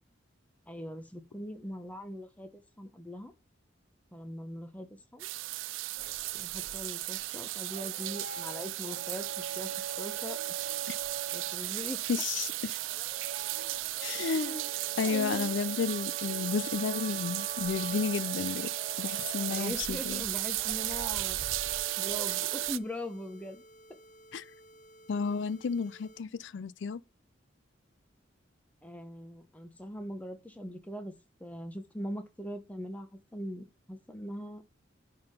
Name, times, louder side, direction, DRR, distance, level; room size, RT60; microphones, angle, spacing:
voice 1, 0.7-3.3 4.1-5.3 6.3-9.7 10.0-10.4 10.6-10.8 11.3-12.0 14.1-14.7 15.0-15.5 19.5-21.4 22.0-23.6 28.8-31.1 31.4-34.6, equal, 10° left, 1.0 m, -41 dB
sound 1, 5.2-22.8, right 18 dB, 90° right, 0.4 m, -35 dB
sound 2, 5.9-22.7, right 5 dB, 45° right, 0.7 m, -44 dB
voice 2, 12.1-12.8 14.0-14.6 15.0-18.7 19.0-20.2 24.3-24.5 25.1-27.0, left 5 dB, 75° left, 0.4 m, -32 dB
sound 3, 14.5-26.2, equal, 40° left, 0.8 m, -56 dB
9.7 x 3.8 x 5.2 m
head